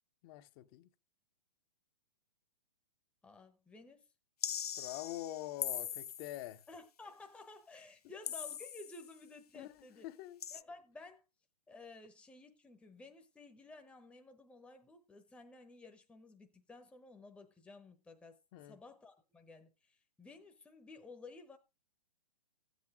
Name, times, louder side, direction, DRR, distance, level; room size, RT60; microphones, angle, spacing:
voice 1, 0.2-0.9 4.8-6.6 9.5-10.4 18.5-18.8, left 14 dB, 35° left, 0.9 m, -45 dB
voice 2, 3.2-4.0 6.7-10.1 10.5-11.2 11.7-18.4 18.6-21.6, left 3 dB, 5° left, 1.0 m, -54 dB
sound 1, 4.4-6.5 8.2-9.1 10.4-10.6, left 9 dB, 75° left, 0.5 m, -41 dB
13.5 x 8.2 x 3.6 m
figure-of-eight pair, 120°, 20 cm